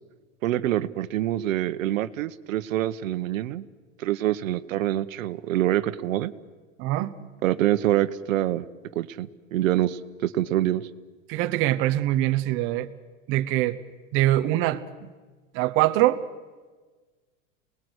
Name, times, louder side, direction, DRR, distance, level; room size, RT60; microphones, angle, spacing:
voice 1, 0.4-3.6 4.0-6.3 7.4-8.6 8.9-10.8, right 13 dB, 85° right, 12 dB, 1.2 m, -25 dB
voice 2, 6.8-7.1 11.3-12.9 13.3-13.8 14.1-15.1 15.5-16.2, right 15 dB, 30° right, 8 dB, 0.9 m, -23 dB
29.5 x 19.5 x 8.1 m, 1.4 s
supercardioid pair, 165°, 39 cm